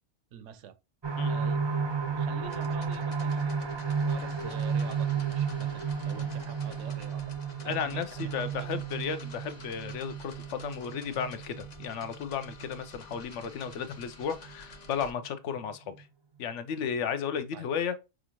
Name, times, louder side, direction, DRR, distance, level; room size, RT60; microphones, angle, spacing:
voice 1, 0.3-0.8 1.3-1.8 2.1-7.2 7.6-8.7 17.5-17.7, right 9 dB, 85° right, 0.9 m, -46 dB
sound 1, 1.0-14.5 15.0-15.1 15.5-15.6, right 6 dB, 45° right, 0.3 m, -33 dB
sound 2, 2.4-15.1, left 3 dB, 40° left, 0.8 m, -51 dB
voice 2, 7.6-16.1 16.4-18.0, left 7 dB, 85° left, 0.9 m, -34 dB
6.0 x 2.5 x 2.9 m
omnidirectional pair, 1.2 m